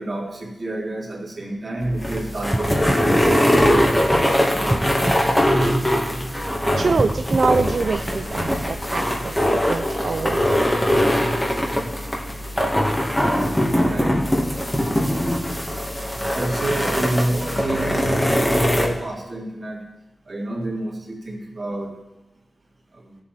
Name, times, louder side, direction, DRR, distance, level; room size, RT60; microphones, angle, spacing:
voice 1, 0.0-5.3 13.8-14.6 16.3-19.9 20.3-22.0 22.9-23.1, right 1 dB, 45° right, -2 dB, 3.2 m, -29 dB
sound 1, 1.8-18.9, equal, 10° left, 2.1 m, -21 dB
sound 2, 2.5-4.1 4.7-6.2 6.9-8.6 9.1-9.2, right 1 dB, 15° right, 0.8 m, -29 dB
voice 2, 6.8-10.9, right 4 dB, 65° right, 9 dB, 0.4 m, -25 dB
16.5 x 7.6 x 4.3 m, 0.96 s
cardioid pair, 60°, 0 cm